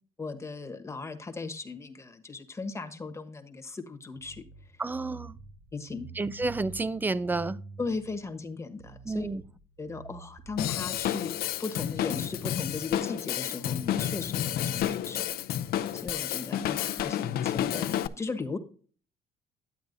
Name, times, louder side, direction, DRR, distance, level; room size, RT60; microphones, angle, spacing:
voice 1, 0.2-4.4 5.7-6.1 7.8-9.3 9.8-15.3 15.9-18.6, left 4 dB, 15° left, 1.2 m, -37 dB
sound 1, 4.2-11.1, right 3 dB, 60° right, 2.5 m, -48 dB
voice 2, 4.8-5.4 6.2-7.6 9.1-9.4, right 3 dB, 10° right, 0.4 m, -30 dB
Drum kit / Drum, 10.6-18.1, left 11 dB, 65° left, 0.5 m, -30 dB
11.0 x 8.2 x 2.6 m
cardioid pair, 110°, 17 cm